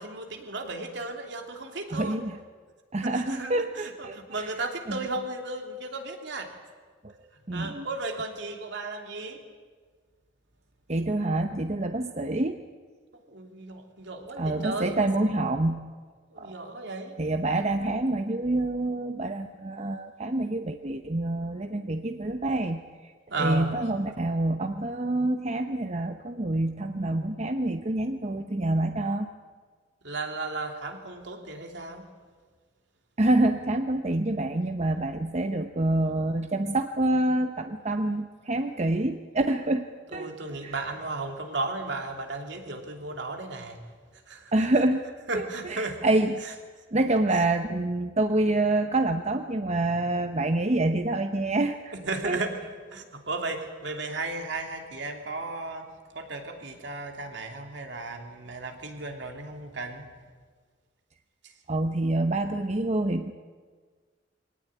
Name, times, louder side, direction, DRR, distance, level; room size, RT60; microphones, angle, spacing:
voice 1, 0.0-2.2 3.0-6.5 7.5-9.4 13.3-15.0 16.3-17.1 23.3-23.8 30.0-32.1 40.1-43.8 44.3-44.5 45.3-46.1 52.0-52.6 52.9-55.9 56.1-60.0, right 2 dB, 65° right, 3 dB, 3.0 m, -35 dB
voice 2, 1.9-2.4 2.9-4.5 4.9-5.0 7.5-7.9 10.9-12.6 14.4-15.9 16.4-16.5 17.2-22.8 23.4-29.3 33.2-40.8 44.5-45.0 45.3-46.5 46.9-51.9 52.2-52.4 61.7-63.3, right 2 dB, 35° right, 7 dB, 0.9 m, -27 dB
23.0 x 18.0 x 9.9 m, 1.5 s
head